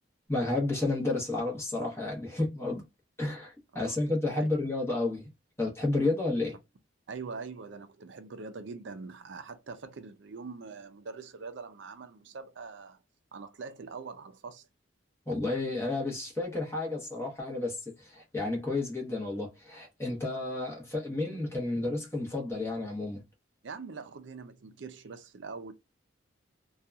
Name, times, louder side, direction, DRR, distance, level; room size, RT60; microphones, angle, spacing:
voice 1, 0.3-2.8 3.2-5.3 5.6-6.6 15.3-23.2, left 2 dB, 15° left, 0.9 m, -31 dB
voice 2, 3.7-4.0 4.3-4.5 7.1-13.0 13.3-14.7 23.6-25.7, right 4 dB, 65° right, 0.5 m, -43 dB
2.7 x 2.3 x 2.3 m
head